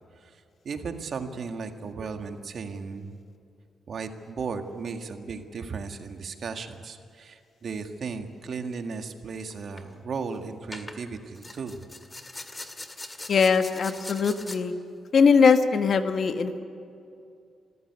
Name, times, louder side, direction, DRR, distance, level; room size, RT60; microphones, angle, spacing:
voice 1, 0.2-3.2 3.9-11.9, right 5 dB, 60° right, 6 dB, 1.8 m, -36 dB
sound 1, 9.5-9.8 10.7-11.0 11.4-14.6, left 2 dB, 20° left, 2.0 m, -41 dB
voice 2, 13.3-14.7 15.1-16.6, left 5 dB, 60° left, 8 dB, 1.4 m, -21 dB
25.0 x 14.5 x 9.5 m, 2.6 s
cardioid pair, 85°, 0 cm